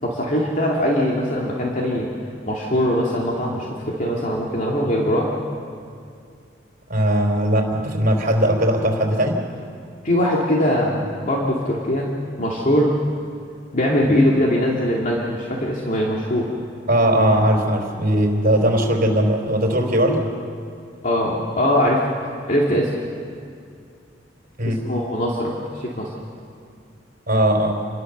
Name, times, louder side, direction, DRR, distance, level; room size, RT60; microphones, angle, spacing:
voice 1, 0.0-2.1 2.5-5.3 10.0-12.0 12.4-12.9 13.7-16.5 21.0-22.0 22.5-22.9 24.6-26.1, equal, 45° left, -3 dB, 2.6 m, -21 dB
voice 2, 6.9-9.4 16.9-20.3 24.6-24.8 27.3-27.7, right 1 dB, 45° right, 2 dB, 4.3 m, -19 dB
28.5 x 21.5 x 6.8 m, 2.3 s
head